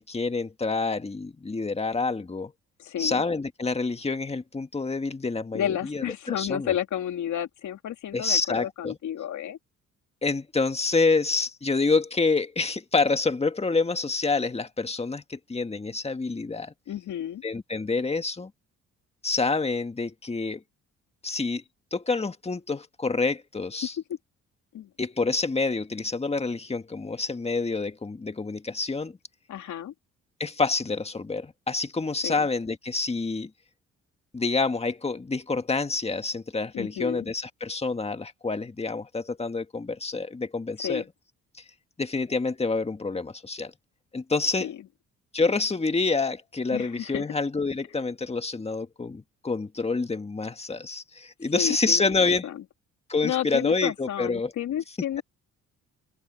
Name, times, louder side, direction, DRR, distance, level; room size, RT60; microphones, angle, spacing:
voice 1, 0.0-2.5 3.0-6.7 8.1-9.0 10.2-16.7 17.4-18.5 19.2-20.6 21.2-21.6 21.9-23.9 25.0-29.2 30.4-33.5 34.3-41.0 42.0-43.7 44.1-44.7 45.3-52.5 53.1-54.5, left 3 dB, 20° left, 1.7 m, -27 dB
voice 2, 2.8-3.2 5.5-9.6 16.9-17.4 24.7-24.9 29.5-29.9 32.2-32.3 36.7-37.3 40.8-41.1 44.6-44.8 46.7-47.2 51.5-52.6 53.2-55.2, left 10 dB, 75° left, 3.1 m, -31 dB
cardioid pair, 90°, 30 cm